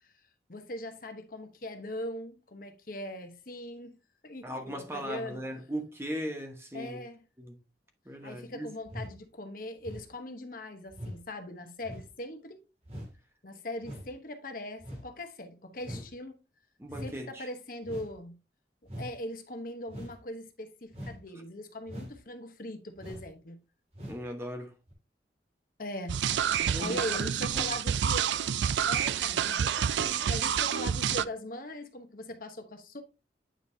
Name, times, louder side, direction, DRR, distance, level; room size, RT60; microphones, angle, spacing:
voice 1, 0.5-4.0 4.2-5.4 6.7-7.2 8.2-12.6 13.4-16.4 17.0-18.3 19.0-23.6 25.8-26.2 26.8-28.3 28.9-33.0, left 1 dB, 50° left, 1.0 m, -40 dB
voice 2, 4.4-7.0 7.4-7.6 8.0-8.7 15.9-16.0 16.8-17.5 24.1-24.7 26.6-27.7, equal, 15° right, 1.1 m, -38 dB
sound 1, 8.8-9.2 9.8-10.1 10.9-11.2 11.8-12.1 12.8-13.2 13.8-14.1 14.8-15.1 15.8-16.1 16.9-17.1 17.8-18.2 18.9-19.1 19.9-20.2 20.9-21.2 21.9-22.2 23.0-23.3 23.9-24.2 24.9-25.0, equal, 35° right, 2.3 m, -42 dB
sound 2, 26.1-31.2, right 8 dB, 85° right, 0.4 m, -28 dB
8.9 x 5.1 x 2.7 m
head